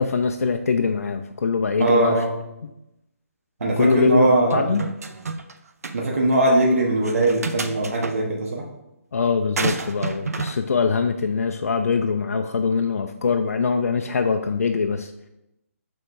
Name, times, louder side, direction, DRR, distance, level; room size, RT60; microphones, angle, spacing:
voice 1, 0.0-2.2 3.8-4.8 9.1-15.1, left 5 dB, 75° left, 5 dB, 0.5 m, -22 dB
voice 2, 1.8-2.3 3.6-4.7 5.9-8.6, right 2 dB, 70° right, -2 dB, 1.3 m, -20 dB
sound 1, 4.5-5.5 5.8-6.0 7.0-8.1 9.6-10.6, right 4 dB, 90° right, 0.7 m, -29 dB
6.8 x 3.6 x 4.7 m, 0.89 s
hypercardioid pair, 170°, 8 cm